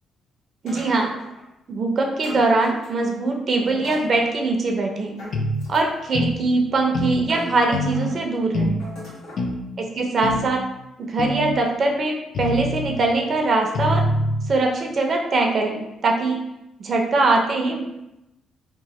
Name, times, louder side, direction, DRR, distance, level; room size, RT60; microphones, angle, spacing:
voice 1, 0.6-1.1 1.7-5.1 5.7-8.8 9.8-10.7 11.0-14.0 14.5-16.5 16.8-17.8, right 3 dB, 50° right, 2 dB, 0.5 m, -22 dB
sound 1, 0.7-1.5 2.2-3.2 3.7-4.3 5.2-6.1 6.8-6.9 7.2-8.1 8.8-9.5, equal, 85° left, 1.2 m, -40 dB
sound 2, 5.3-5.5 6.1-6.4 6.9-7.2 7.7-8.0 8.5-8.8 9.4-9.6 10.2-10.5 11.2-11.5 12.3-13.0 13.7-14.4, left 1 dB, 55° left, 0.4 m, -24 dB
3.0 x 2.1 x 2.9 m, 0.88 s
cardioid pair, 90°, 0 cm